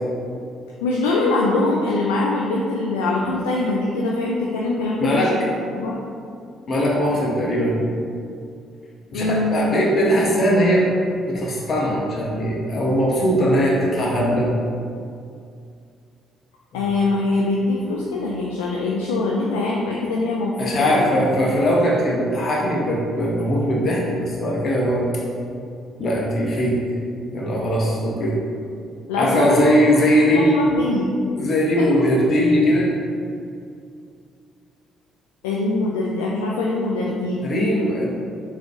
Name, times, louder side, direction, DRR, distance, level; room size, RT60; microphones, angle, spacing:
voice 1, 0.8-5.4 5.7-6.0 9.1-9.7 16.7-21.1 21.4-21.5 29.1-29.6 30.4-31.1 31.8-31.9 35.4-37.5, left 2 dB, 85° left, -3 dB, 0.3 m, -23 dB
voice 2, 5.0-5.4 6.7-7.8 9.1-11.0 11.3-14.5 16.7-16.8 20.6-25.1 26.0-26.8 27.3-28.4 29.2-30.5 31.4-32.9 37.4-38.1, equal, 50° left, -3 dB, 1.0 m, -20 dB
3.7 x 3.2 x 3.4 m, 2.4 s
hypercardioid pair, 50°, 0 cm